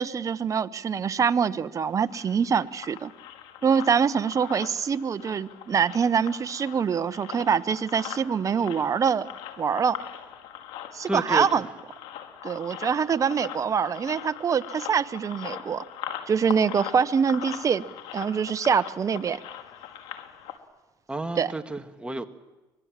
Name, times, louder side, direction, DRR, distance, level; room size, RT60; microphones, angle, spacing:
voice 1, 0.0-3.1 3.6-9.3 9.6-10.0 10.9-11.6 12.4-15.8 16.3-17.8 18.1-19.4 21.4-21.5, right 6 dB, 40° right, 13 dB, 0.9 m, -24 dB
sound 1, 1.9-20.6, left 10 dB, 85° left, 2.0 m, -41 dB
voice 2, 11.1-11.6 21.1-22.3, right 2 dB, 10° right, 7 dB, 1.6 m, -31 dB
25.0 x 20.0 x 7.5 m, 1.1 s
cardioid pair, 90°, 9 cm